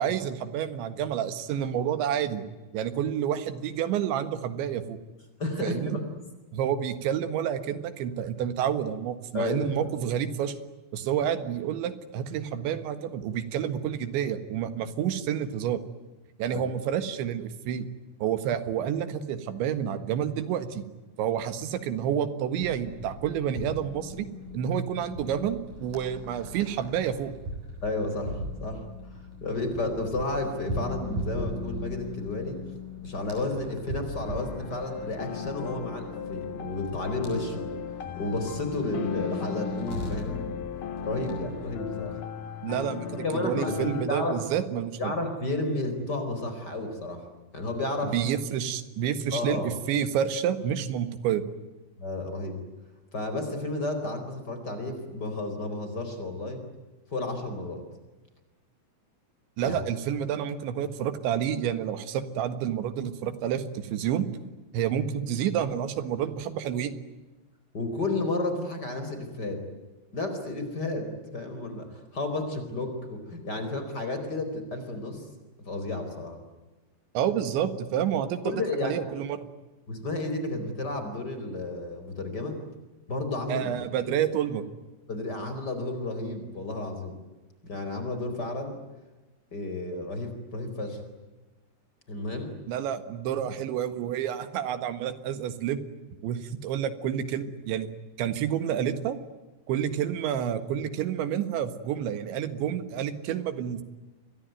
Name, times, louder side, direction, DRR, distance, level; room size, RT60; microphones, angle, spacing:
voice 1, 0.0-2.5 2.7-5.0 5.6-6.0 6.5-10.6 10.9-15.8 16.4-17.9 18.2-20.9 21.2-24.3 24.5-27.3 42.6-45.1 48.1-51.4 59.6-64.3 64.7-66.9 77.2-79.5 83.5-84.6 92.7-95.8 96.2-97.9 98.2-99.2 99.7-103.8, right 9 dB, 90° right, 11 dB, 4.0 m, -29 dB
voice 2, 5.4-6.2 9.3-9.8 16.5-16.6 27.8-28.8 29.1-32.6 33.0-40.6 41.0-42.2 43.2-44.4 45.0-47.2 47.5-48.1 49.3-49.7 52.0-52.6 53.1-56.6 57.1-57.8 59.6-59.8 67.7-69.6 70.1-75.2 75.6-76.4 78.4-79.1 79.9-82.6 83.1-83.7 84.1-84.2 85.1-87.2 87.6-88.8 89.5-91.0 92.1-92.6, left 2 dB, 25° left, 7 dB, 4.6 m, -32 dB
sound 1, 22.6-41.9, left 1 dB, 45° right, 8.7 m, -39 dB
sound 2, 34.2-44.0, left 8 dB, 55° left, 3.2 m, -37 dB
28.5 x 22.5 x 9.3 m, 1.2 s
omnidirectional pair, 5.1 m